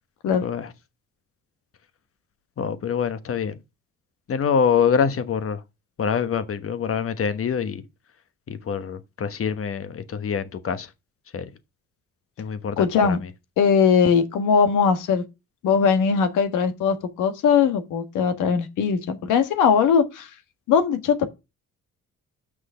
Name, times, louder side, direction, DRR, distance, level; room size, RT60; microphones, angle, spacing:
voice 1, 2.6-3.5 4.3-5.6 6.0-7.8 8.5-10.9 11.3-11.5 12.4-13.2, left 7 dB, 50° left, 1.2 m, -25 dB
voice 2, 12.8-13.2 13.6-15.2 15.6-20.3 20.7-21.2, left 6 dB, 85° left, 1.5 m, -20 dB
6.2 x 6.1 x 5.6 m
cardioid pair, 90°, 30 cm